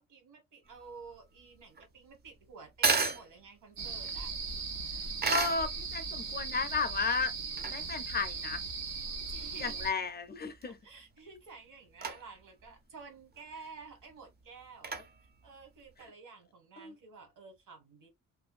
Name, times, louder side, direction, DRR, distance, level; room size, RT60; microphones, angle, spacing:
voice 1, 0.0-4.3 9.3-10.1 10.6-14.9 15.4-18.1, right 4 dB, 65° right, 1.5 m, -52 dB
sound 1, 0.6-16.1, right 4 dB, 30° right, 0.4 m, -37 dB
sound 2, 3.8-9.9, right 4 dB, 90° right, 0.8 m, -38 dB
voice 2, 5.3-7.3 7.7-8.6 9.6-10.8 16.8-16.9, left 4 dB, 30° left, 0.4 m, -33 dB
2.5 x 2.2 x 2.3 m
cardioid pair, 105°, 33 cm